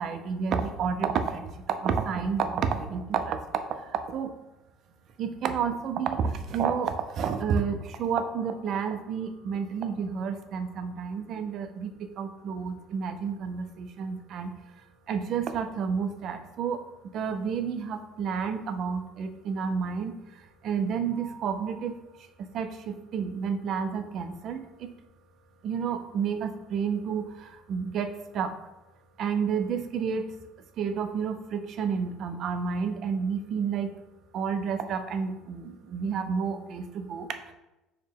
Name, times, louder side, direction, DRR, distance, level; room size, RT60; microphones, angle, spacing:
voice 1, 0.0-1.5 1.8-3.4 3.7-4.3 5.2-14.5 15.1-16.8 17.1-22.0 22.4-24.9 25.6-28.5 29.2-30.2 30.8-33.9 34.3-37.5, right 6 dB, 50° right, 8 dB, 0.4 m, -30 dB
4.2 x 2.1 x 3.4 m, 1.0 s
cardioid pair, 120°, 0 cm